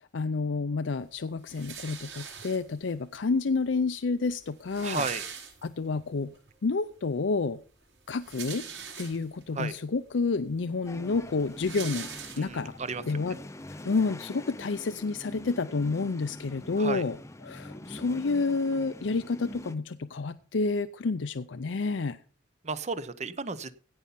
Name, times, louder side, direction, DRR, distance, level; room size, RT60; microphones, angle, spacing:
voice 1, 0.1-5.1 5.6-6.3 6.6-7.6 8.1-8.6 9.0-12.1 12.4-12.8 13.1-13.4 13.8-17.2 17.4-22.2, left 4 dB, 75° left, 11 dB, 0.5 m, -29 dB
sound 1, 1.5-2.9 3.8-3.9 4.1-4.2 4.4-6.0 6.5-6.6 8.0-9.5 10.1-10.2 10.5-12.8, right 7 dB, 65° right, 7.1 m, -42 dB
voice 2, 4.8-5.2 9.5-9.8 12.4-13.0 16.8-17.0 22.6-23.7, right 4 dB, 35° right, 14 dB, 0.8 m, -33 dB
sound 2, 10.8-19.8, left 1 dB, 15° left, 0.6 m, -44 dB
16.5 x 5.6 x 5.7 m, 0.40 s
head